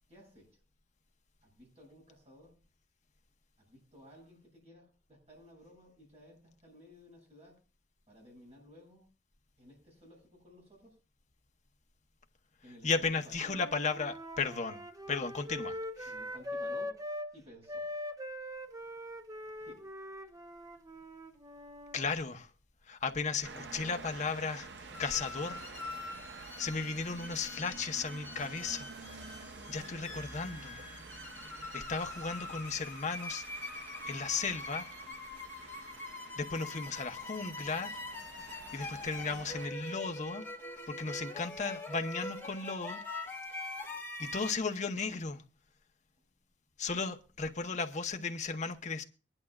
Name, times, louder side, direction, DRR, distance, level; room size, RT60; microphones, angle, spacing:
voice 1, 0.1-0.5 1.4-2.6 3.6-7.6 8.1-9.0 9.6-11.0 12.6-13.3 16.1-17.0 17.3-17.9 19.6-19.8, equal, 35° right, 7.9 m, -56 dB
voice 2, 12.8-14.8 15.1-16.1 21.9-22.5 22.9-24.7 25.0-25.7 26.6-28.9 29.2-29.4 29.7-30.8 31.7-33.4 34.0-34.9 36.4-38.0 38.7-40.4 40.9-43.0 44.2-45.4 46.8-49.0, left 4 dB, 40° left, 0.9 m, -35 dB
Wind instrument woodwind instrument, 13.4-17.3 17.7-22.0, left 1 dB, 20° right, 0.8 m, -42 dB
sound 1, 23.4-39.7, right 4 dB, 65° right, 0.9 m, -49 dB
sound 2, 24.9-44.5, left 2 dB, 10° left, 2.3 m, -44 dB
22.5 x 11.0 x 2.4 m
head